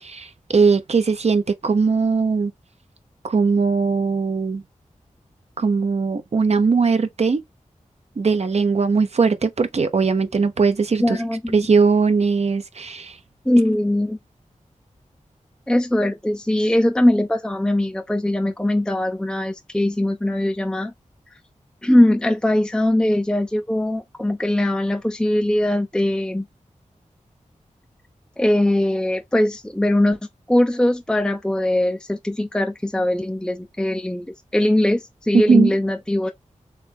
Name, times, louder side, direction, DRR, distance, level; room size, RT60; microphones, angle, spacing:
voice 1, 0.0-2.5 3.2-4.6 5.6-7.4 8.2-11.2 11.5-13.2 35.3-35.7, right 4 dB, 55° right, 0.6 m, -19 dB
voice 2, 11.0-11.5 13.5-14.2 15.7-20.9 21.8-26.5 28.4-30.2 30.5-36.3, left 1 dB, 5° left, 0.4 m, -20 dB
3.3 x 3.1 x 3.4 m
cardioid pair, 50°, 13 cm